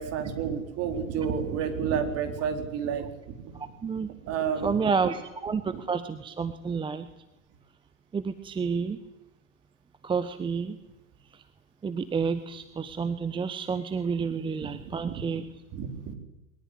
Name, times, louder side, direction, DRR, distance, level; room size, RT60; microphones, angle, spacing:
voice 1, 0.0-3.6 4.3-4.8 5.7-5.8 14.6-15.3 15.7-16.1, right 7 dB, 35° right, 6 dB, 4.3 m, -31 dB
voice 2, 4.6-7.1 8.1-9.0 10.0-10.8 11.8-15.4, right 5 dB, 10° right, 11 dB, 1.1 m, -29 dB
22.5 x 19.5 x 10.0 m, 0.95 s
figure-of-eight pair, 90°, 41 cm